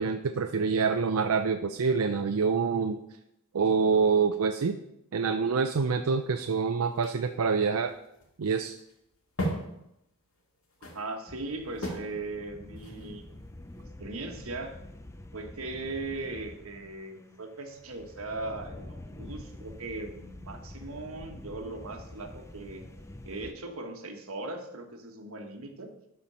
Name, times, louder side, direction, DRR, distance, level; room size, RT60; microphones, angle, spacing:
voice 1, 0.0-3.0 3.5-4.8 5.1-7.9 8.4-8.7, right 5 dB, 90° right, 6 dB, 0.5 m, -26 dB
sound 1, 6.2-13.8, equal, 70° left, 2.0 m, -39 dB
voice 2, 10.9-13.2 14.0-14.8 15.3-22.8 23.2-25.9, right 2 dB, 70° right, 4 dB, 1.4 m, -39 dB
sound 2, 11.3-23.5, left 1 dB, 15° left, 0.5 m, -47 dB
12.0 x 4.5 x 5.5 m, 0.83 s
head